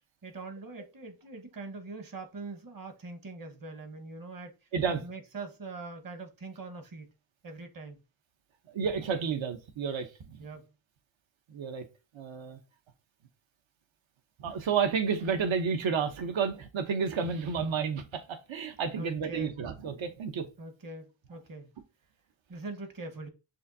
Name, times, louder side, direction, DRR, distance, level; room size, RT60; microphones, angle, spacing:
voice 1, 0.2-4.5 4.9-7.1 7.4-8.0 10.4-10.7 19.0-19.6 20.6-21.7 22.5-23.3, right 3 dB, 45° right, 1.1 m, -42 dB
voice 2, 8.7-10.4 11.5-11.8 12.1-12.6 14.4-20.5, right 6 dB, 80° right, 0.9 m, -31 dB
6.5 x 2.6 x 2.7 m
wide cardioid pair, 115°, 46 cm